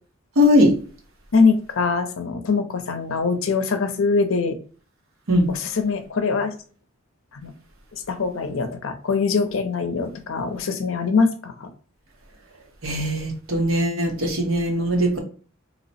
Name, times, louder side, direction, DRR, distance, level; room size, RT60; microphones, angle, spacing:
voice 1, 0.4-0.7 5.3-5.5 12.8-15.2, left 1 dB, 70° right, 2 dB, 1.0 m, -20 dB
voice 2, 1.3-4.6 5.5-6.5 7.3-7.5 7.9-11.7, left 4 dB, 70° left, 7 dB, 0.6 m, -23 dB
3.0 x 2.0 x 4.0 m, 0.40 s
head